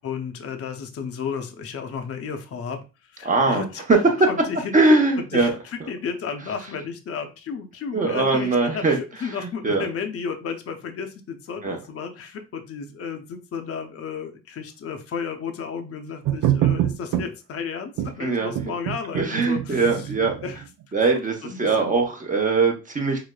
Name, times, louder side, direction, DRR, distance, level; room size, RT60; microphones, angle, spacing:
voice 1, 0.0-2.8 3.1-3.8 4.2-4.7 5.2-20.1 20.4-20.6 21.4-22.0, left 6 dB, 50° left, 5 dB, 0.6 m, -33 dB
voice 2, 3.2-3.6 3.9-4.0 4.7-5.5 7.9-9.0 9.2-9.3 9.6-9.8 11.6-11.8 18.2-18.7 19.1-20.3 20.9-23.2, right 3 dB, 25° right, 1 dB, 0.8 m, -21 dB
sound 1, 16.3-17.3 18.0-18.1 18.6-20.6, right 12 dB, 80° right, 0.5 m, -24 dB
4.8 x 2.0 x 2.2 m, 0.31 s
cardioid pair, 90°, 30 cm